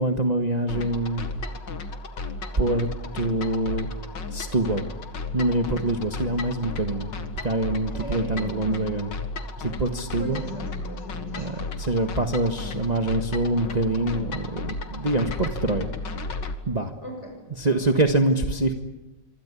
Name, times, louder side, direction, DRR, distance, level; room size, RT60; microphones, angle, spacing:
voice 1, 0.0-1.5 2.6-2.9 3.1-3.9 4.3-4.9 5.3-7.1 7.4-9.1 9.6-10.4 11.4-15.9 16.7-16.9 17.6-18.7, right 2 dB, 25° right, 5 dB, 1.5 m, -25 dB
sound 1, 0.7-16.5, left 3 dB, 80° left, 2.6 m, -34 dB
voice 2, 7.9-8.8 10.2-11.7 17.0-17.4 17.7-17.8, left 1 dB, 35° left, 4 dB, 7.2 m, -38 dB
26.5 x 25.5 x 8.5 m, 0.99 s
omnidirectional pair, 1.9 m